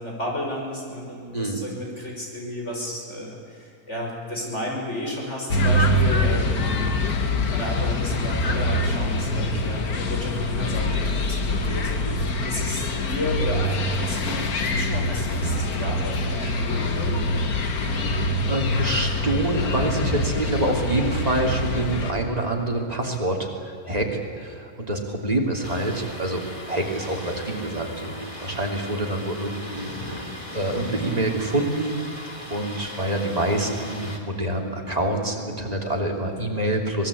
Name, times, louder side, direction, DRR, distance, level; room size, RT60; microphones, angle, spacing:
voice 1, 0.0-6.7 7.5-17.2, left 1 dB, 45° left, -2 dB, 6.2 m, -32 dB
sound 1, 5.5-22.1, left 1 dB, 70° left, 2.1 m, -24 dB
voice 2, 17.9-32.0 32.5-37.1, right 1 dB, 25° right, 1 dB, 3.2 m, -26 dB
Thunder, 25.6-34.2, left 1 dB, 20° left, 2.6 m, -38 dB
25.5 x 20.0 x 8.6 m, 2.5 s
omnidirectional pair, 1.6 m